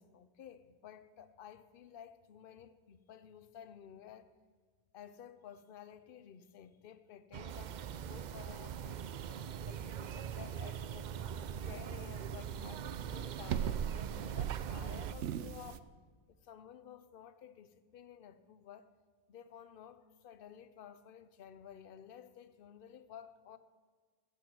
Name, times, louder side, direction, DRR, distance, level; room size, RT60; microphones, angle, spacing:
voice 1, 0.0-4.3 4.9-11.1 11.6-15.9 16.3-18.9 19.3-23.6, left 9 dB, 55° left, 0.9 m, -53 dB
sound 1, 7.3-15.1, right 8 dB, 60° right, 0.5 m, -42 dB
sound 2, 7.5-15.8, right 9 dB, 85° right, 0.9 m, -42 dB
15.0 x 8.9 x 6.0 m
omnidirectional pair, 1.2 m